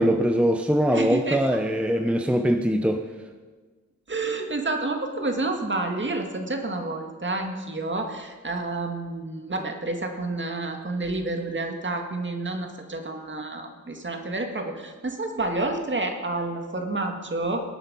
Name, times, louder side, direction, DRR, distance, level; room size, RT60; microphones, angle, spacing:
voice 1, 0.0-3.0, equal, 5° right, 6 dB, 0.8 m, -22 dB
voice 2, 0.9-1.6 4.1-17.6, right 2 dB, 40° right, 4 dB, 2.1 m, -29 dB
19.5 x 8.7 x 5.5 m, 1.4 s
wide cardioid pair, 75°, 30 cm